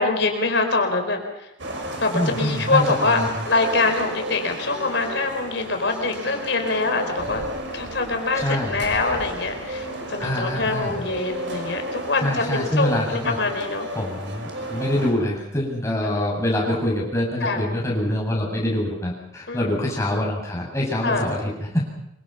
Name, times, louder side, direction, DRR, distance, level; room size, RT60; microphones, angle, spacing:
voice 1, 0.0-1.5 2.0-7.4 7.7-13.9 16.0-16.3 17.4-17.6 19.5-19.8 20.1-20.3 21.0-21.3, left 3 dB, 65° left, 5 dB, 4.7 m, -24 dB
sound 1, 1.6-15.1, right 1 dB, 70° right, 6.0 m, -33 dB
voice 2, 2.1-3.4 8.3-8.8 10.2-11.0 12.2-13.4 13.9-21.8, left 1 dB, 15° left, -2 dB, 7.8 m, -25 dB
27.0 x 24.5 x 5.9 m, 0.85 s
head